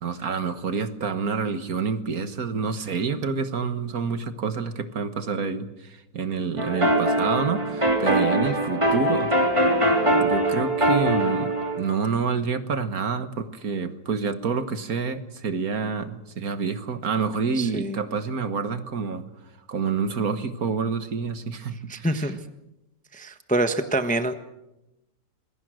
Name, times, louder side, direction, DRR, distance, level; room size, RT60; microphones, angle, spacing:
voice 1, 0.0-9.3 10.2-19.3 19.7-22.3, right 5 dB, 55° right, 10 dB, 1.8 m, -28 dB
sound 1, 6.6-11.8, right 1 dB, 15° right, 3.4 m, -22 dB
voice 2, 17.6-18.0 21.9-22.4 23.1-24.3, right 1 dB, 5° left, 8 dB, 1.0 m, -26 dB
27.5 x 21.5 x 6.4 m, 0.93 s
omnidirectional pair, 1.9 m